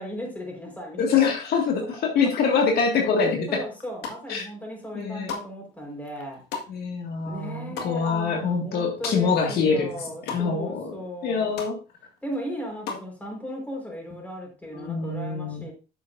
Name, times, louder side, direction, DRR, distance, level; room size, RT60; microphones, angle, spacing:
voice 1, 0.0-1.3 3.5-6.4 7.2-11.5 12.2-15.7, equal, 10° left, 0 dB, 4.7 m, -36 dB
voice 2, 1.0-3.5 4.3-4.4 4.9-5.3 6.7-10.0 10.3-11.0 11.2-11.8 14.7-15.7, left 5 dB, 70° left, 1 dB, 2.1 m, -24 dB
sound 1, 3.7-4.5 4.8-9.6 9.8-10.4 10.9-11.0 11.2-11.7 12.1-13.1, left 6 dB, 85° left, 1.9 m, -37 dB
10.0 x 7.2 x 2.7 m, 0.32 s
cardioid pair, 110°, 17 cm